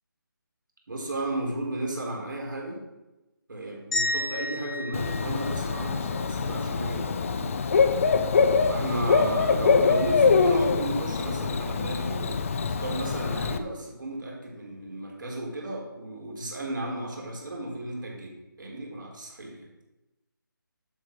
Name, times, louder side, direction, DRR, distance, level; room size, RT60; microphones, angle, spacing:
voice 1, 0.9-2.8 3.5-7.6 8.7-19.7, right 1 dB, 65° right, -2 dB, 4.3 m, -34 dB
sound 1, 3.9-6.2, left 1 dB, 5° left, 2.0 m, -32 dB
Bird / Cricket, 4.9-13.6, left 5 dB, 40° left, 0.8 m, -24 dB
11.5 x 7.7 x 4.9 m, 1.0 s
figure-of-eight pair, 160°, 12 cm